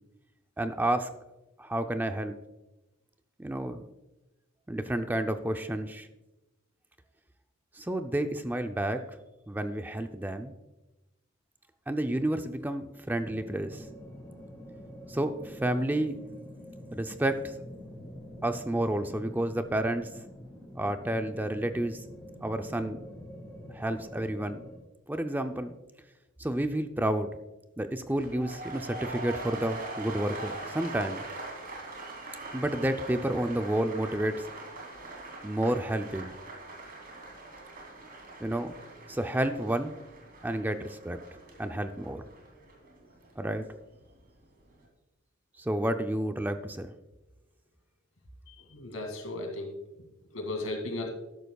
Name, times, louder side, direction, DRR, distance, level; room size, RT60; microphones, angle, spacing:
voice 1, 0.6-1.1 1.6-2.4 3.4-3.9 4.7-6.1 7.8-9.0 9.5-10.5 11.9-13.8 15.1-16.2 16.9-17.5 18.4-20.1 20.7-22.0 22.4-23.0 23.7-24.7 25.1-25.7 26.4-27.3 27.8-31.3 32.5-34.4 35.4-36.3 38.4-38.7 39.1-39.9 40.4-41.2 41.6-42.2 43.4-43.7 45.6-46.9, right 1 dB, 10° right, 7 dB, 0.5 m, -30 dB
sound 1, 13.1-24.8, equal, 15° left, 1.9 m, -46 dB
sound 2, 28.0-44.1 44.4-44.8, right 2 dB, 45° right, 2.8 m, -43 dB
voice 2, 48.5-49.7 50.3-51.1, left 2 dB, 90° left, 3 dB, 2.3 m, -35 dB
13.0 x 11.0 x 2.3 m, 1.0 s
head